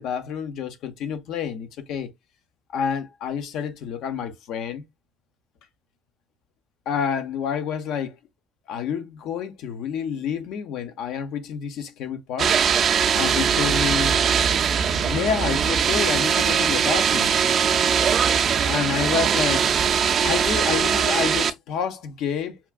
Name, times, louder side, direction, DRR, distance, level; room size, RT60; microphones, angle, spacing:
voice 1, 0.0-2.1 2.7-4.8 6.9-8.2 8.7-12.6 13.1-14.2 14.9-17.3 18.6-19.7 20.2-22.6, left 7 dB, 70° left, 0.7 m, -28 dB
sound 1, 12.4-21.5, right 7 dB, 55° right, 0.4 m, -21 dB
5.6 x 2.4 x 2.3 m
hypercardioid pair, 65°, 0 cm